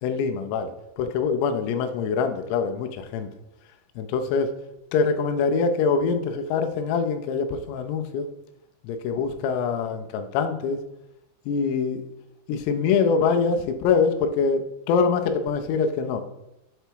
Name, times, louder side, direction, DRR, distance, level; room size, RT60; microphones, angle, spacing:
voice 1, 0.0-0.7 1.0-3.3 4.0-4.5 4.9-8.3 8.8-10.8 11.5-12.0 12.5-16.2, left 5 dB, 90° left, 7 dB, 3.3 m, -24 dB
7.9 x 3.4 x 4.6 m, 0.90 s
omnidirectional pair, 5.8 m